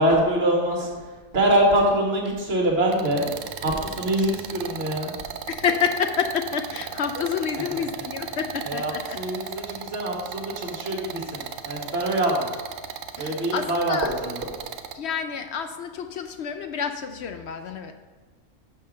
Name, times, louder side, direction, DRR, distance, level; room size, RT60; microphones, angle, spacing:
voice 1, 0.0-3.3 3.6-5.1 7.5-8.1 8.6-12.5 13.2-14.5, right 1 dB, 45° right, 0 dB, 1.8 m, -24 dB
sound 1, 2.9-14.9, right 8 dB, 70° right, 0.9 m, -36 dB
voice 2, 5.5-9.5 13.2-14.1 14.9-17.9, left 7 dB, 65° left, 8 dB, 0.7 m, -29 dB
6.9 x 5.7 x 6.3 m, 1.3 s
omnidirectional pair, 1.5 m